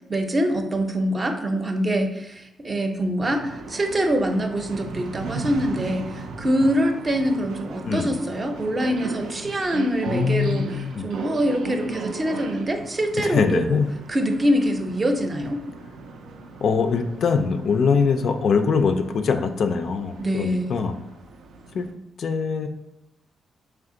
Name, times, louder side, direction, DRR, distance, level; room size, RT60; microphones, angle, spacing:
voice 1, 0.1-10.7 11.0-13.8 14.1-15.6 20.2-20.7, equal, 30° right, 4 dB, 0.6 m, -24 dB
sound 1, 3.3-21.9, right 4 dB, 85° right, 0.4 m, -38 dB
voice 2, 10.1-11.1 13.2-13.9 16.6-20.9 21.7-21.9 22.2-22.7, left 5 dB, 65° left, 7 dB, 0.3 m, -22 dB
3.4 x 3.4 x 3.7 m, 0.88 s
cardioid pair, 80°, 0 cm